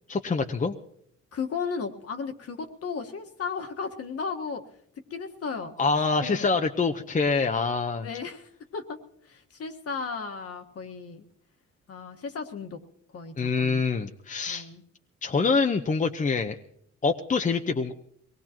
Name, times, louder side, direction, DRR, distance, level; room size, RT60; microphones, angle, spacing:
voice 1, 0.1-0.7 5.8-8.1 13.4-14.7 15.2-16.6 17.0-17.9, left 4 dB, 25° left, 5 dB, 0.8 m, -25 dB
voice 2, 1.3-4.6 5.1-5.7 6.2-6.5 8.0-9.0 9.3-11.2 11.9-12.8 13.1-13.9 14.5-14.8, left 5 dB, 50° left, 4 dB, 1.5 m, -35 dB
22.5 x 19.0 x 3.0 m, 0.70 s
cardioid pair, 90°, 30 cm